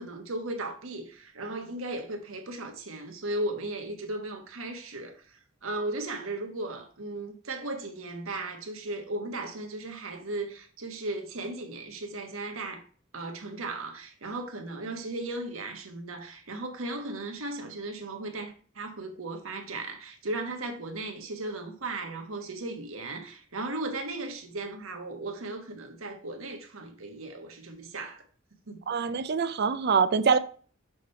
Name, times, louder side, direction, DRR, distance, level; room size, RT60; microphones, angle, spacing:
voice 1, 0.0-12.8 13.1-28.2 28.7-29.1, right 2 dB, 90° right, 1.4 m, -36 dB
voice 2, 28.9-30.4, right 5 dB, 55° right, 0.5 m, -24 dB
6.3 x 3.3 x 5.6 m
head